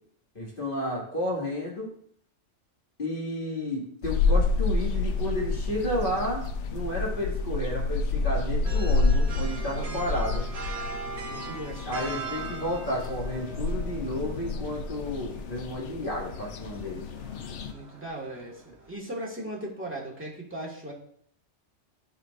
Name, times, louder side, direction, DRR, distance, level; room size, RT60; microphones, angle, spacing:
voice 1, 0.3-1.9 3.0-6.5 6.7-10.5 11.9-17.0, left 1 dB, 45° left, -4 dB, 2.2 m, -32 dB
sound 1, 4.0-17.7, left 3 dB, 80° left, 0.9 m, -29 dB
sound 2, 8.6-19.0, right 4 dB, 65° right, 1.3 m, -41 dB
voice 2, 9.8-10.3 11.3-12.3 17.6-20.9, right 1 dB, 10° right, -4 dB, 1.7 m, -38 dB
13.0 x 4.5 x 2.5 m, 0.65 s
omnidirectional pair, 1.2 m